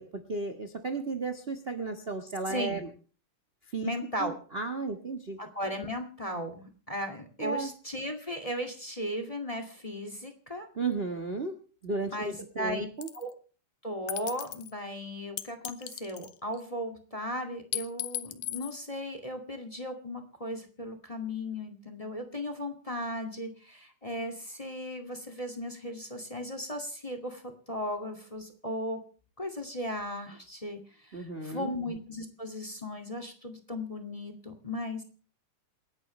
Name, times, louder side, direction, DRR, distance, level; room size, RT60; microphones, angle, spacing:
voice 1, 0.0-2.9 3.7-3.9 4.2-5.4 7.4-7.7 10.8-11.6 11.8-13.1 31.1-31.7, right 3 dB, 40° right, 6 dB, 0.8 m, -34 dB
voice 2, 2.5-2.8 3.8-4.3 5.4-10.7 12.1-12.9 13.1-13.3 13.8-29.0 29.4-35.0, left 1 dB, 15° left, 7 dB, 1.8 m, -36 dB
sound 1, 13.0-13.3 14.1-14.7 15.4-16.6 17.7-18.8, left 14 dB, 80° left, 2.4 m, -36 dB
28.0 x 11.0 x 3.2 m, 0.39 s
omnidirectional pair, 3.6 m